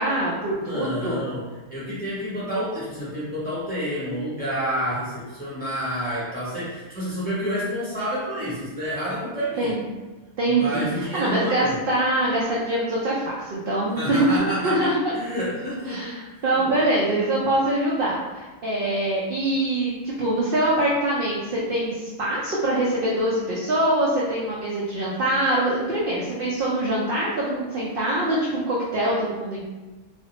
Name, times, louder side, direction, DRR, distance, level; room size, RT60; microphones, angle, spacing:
voice 1, 0.0-1.2 9.6-9.8 10.4-14.4 14.6-15.0 15.9-29.7, right 1 dB, 65° right, -6 dB, 0.5 m, -24 dB
voice 2, 0.5-9.8 10.5-11.8 13.9-16.7, equal, 10° left, -10 dB, 0.7 m, -29 dB
2.5 x 2.0 x 2.8 m, 1.2 s
omnidirectional pair, 1.4 m